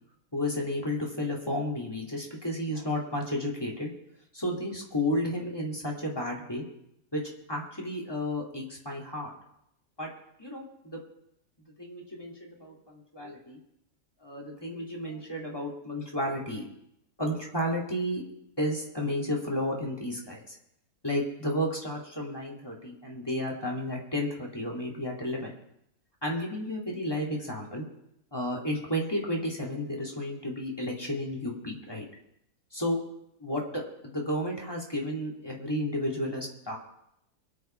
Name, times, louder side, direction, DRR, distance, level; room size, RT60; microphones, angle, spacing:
voice 1, 0.3-3.9 4.3-6.6 7.1-7.2 7.5-9.3 10.0-10.1 10.4-11.0 11.8-13.6 14.2-16.6 17.2-18.2 18.6-20.6 21.0-25.5 26.2-27.9 28.3-32.0 32.7-33.0 33.4-33.6 34.0-36.8, left 1 dB, 15° left, -2 dB, 2.8 m, -32 dB
23.0 x 8.6 x 4.6 m, 0.79 s
omnidirectional pair, 1.7 m